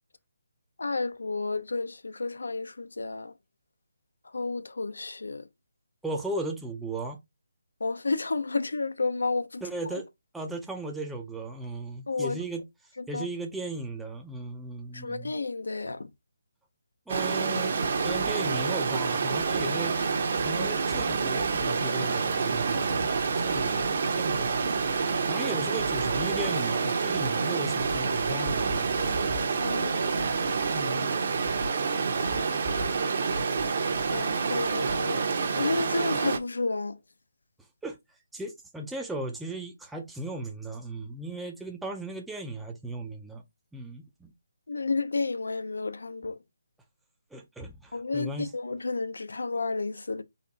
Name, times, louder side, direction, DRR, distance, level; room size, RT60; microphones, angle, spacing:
voice 1, 0.8-3.3 4.3-5.4 7.8-9.6 9.9-10.0 12.1-12.4 13.1-13.3 14.9-16.1 29.6-30.3 34.1-35.2 35.5-37.0 44.7-46.4 47.9-50.2, left 3 dB, 85° left, 0.6 m, -31 dB
voice 2, 6.0-7.2 9.6-10.1 10.3-12.6 13.1-15.3 17.1-17.8 18.0-20.0 20.3-23.1 23.4-23.9 24.2-24.6 25.3-29.0 30.7-31.1 37.8-38.0 38.3-43.4 43.7-44.3 47.3-48.5, right 2 dB, 5° right, 0.4 m, -36 dB
Stream, 17.1-36.4, right 4 dB, 50° right, 0.8 m, -28 dB
4.1 x 2.5 x 3.9 m
hypercardioid pair, 165°, 0 cm